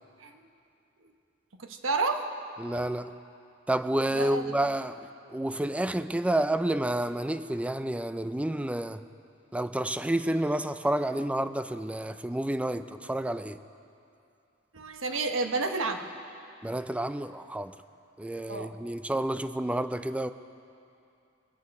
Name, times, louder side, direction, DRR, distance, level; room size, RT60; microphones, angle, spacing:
voice 1, 1.6-2.2 4.1-4.6 14.7-16.0 18.5-18.7, right 3 dB, 75° right, 5 dB, 1.1 m, -30 dB
voice 2, 2.6-3.1 3.7-5.0 5.3-9.0 9.5-13.6 16.6-17.7 18.2-20.3, right 1 dB, 5° right, 11 dB, 0.4 m, -29 dB
22.5 x 9.5 x 5.3 m, 2.6 s
head